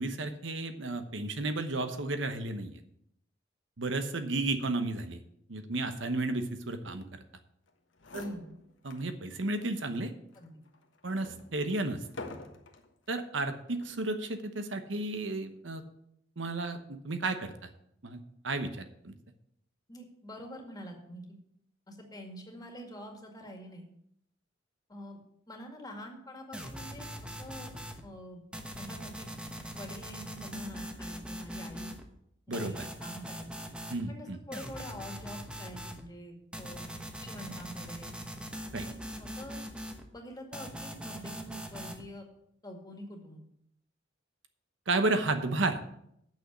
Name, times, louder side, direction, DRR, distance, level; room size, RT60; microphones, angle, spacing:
voice 1, 0.0-2.7 3.8-5.2 5.5-7.1 8.8-10.1 11.0-12.0 13.1-15.8 16.4-16.8 17.0-17.5 18.0-19.1 32.5-32.9 33.9-34.4 38.7-38.8 44.9-45.8, right 2 dB, 70° right, 8 dB, 1.0 m, -32 dB
sound 1, 7.7-7.8 8.0-9.1 9.6-9.7 10.3-12.9 13.7-14.0, left 2 dB, 80° left, 1.3 m, -47 dB
voice 2, 8.2-8.5 10.4-10.6 19.9-21.2 21.9-23.8 24.9-25.2 25.5-27.7 28.0-28.4 28.8-29.3 29.7-31.9 32.5-33.5 34.1-36.9 37.2-38.1 38.8-39.6 40.1-42.3 42.6-43.4, equal, 20° left, 2 dB, 2.0 m, -45 dB
sound 2, 26.5-28.0 28.5-32.0 32.5-34.0 34.5-36.0 36.5-40.0 40.5-42.0, equal, 5° right, 1.0 m, -42 dB
8.5 x 6.4 x 8.1 m, 0.74 s
head